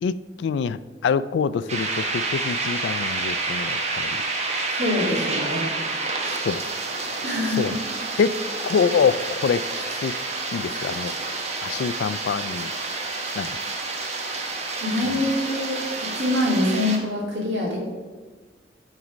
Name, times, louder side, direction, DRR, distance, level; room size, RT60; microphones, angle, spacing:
voice 1, 0.0-4.2 6.4-6.6 7.5-7.7 8.2-9.6 10.0-10.2 10.5-11.1 11.6-12.7 13.4-13.6, left 6 dB, 75° left, 17 dB, 0.3 m, -25 dB
sound 1, 1.7-17.0, right 3 dB, 40° right, 1.0 m, -29 dB
voice 2, 4.7-5.7 7.2-7.8 14.8-17.8, left 1 dB, 75° right, -2 dB, 2.3 m, -25 dB
9.4 x 4.2 x 5.0 m, 1.4 s
head